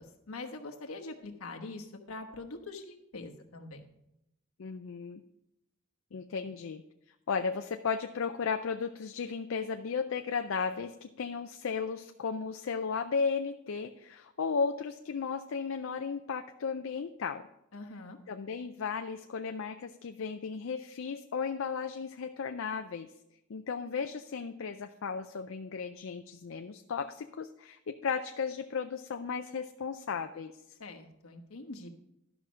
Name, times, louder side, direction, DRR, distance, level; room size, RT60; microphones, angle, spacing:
voice 1, 0.0-3.9 17.7-18.2 30.8-31.9, left 2 dB, 90° left, 3 dB, 1.2 m, -44 dB
voice 2, 4.6-5.2 6.1-6.8 7.3-17.5 18.3-23.1 23.5-30.5, left 5 dB, 70° left, 7 dB, 0.4 m, -35 dB
12.0 x 5.8 x 5.1 m, 0.84 s
head